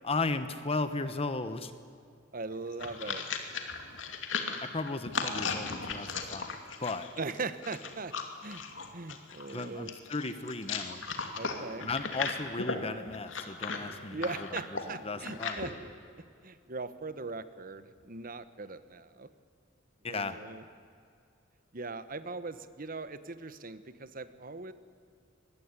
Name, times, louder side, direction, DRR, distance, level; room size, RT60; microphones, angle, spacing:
voice 1, 0.0-1.7 4.6-6.5 6.8-7.1 9.5-11.0 11.8-14.6 15.0-15.6 20.0-20.4, left 3 dB, 30° left, 11 dB, 1.0 m, -35 dB
voice 2, 2.3-3.5 7.2-8.1 8.4-8.6 8.9-9.9 11.3-11.9 14.1-15.7 16.4-19.3 20.0-20.6 21.7-24.7, right 3 dB, 45° right, 13 dB, 1.2 m, -40 dB
sound 1, 2.5-15.7, left 5 dB, 75° left, 2.7 m, -37 dB
25.0 x 20.0 x 9.8 m, 2.3 s
head